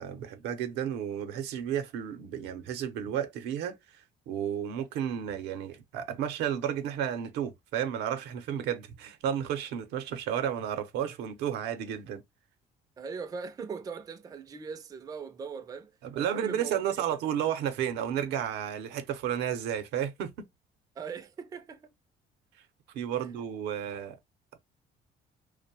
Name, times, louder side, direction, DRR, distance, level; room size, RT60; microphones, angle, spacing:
voice 1, 0.0-3.8 4.3-12.2 16.0-20.5 22.9-24.2, right 9 dB, 90° right, 0.6 m, -32 dB
voice 2, 13.0-16.8 21.0-21.9 23.2-23.3, right 5 dB, 20° right, 0.3 m, -40 dB
2.6 x 2.1 x 2.7 m
cardioid pair, 110°, 17 cm